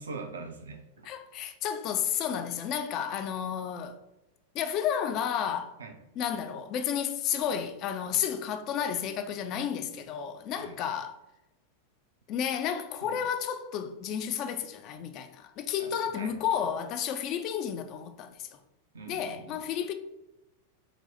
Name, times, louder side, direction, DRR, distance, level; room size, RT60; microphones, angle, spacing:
voice 1, 0.0-1.1 5.8-6.0 10.6-10.8 13.0-13.2 15.8-16.4 18.9-19.6, right 4 dB, 70° right, 0.5 m, -43 dB
voice 2, 1.0-4.0 4.5-5.8 6.2-11.2 12.3-18.6 19.1-19.9, left 8 dB, 40° left, 0.3 m, -32 dB
4.1 x 2.0 x 2.7 m
figure-of-eight pair, 90°, 0 cm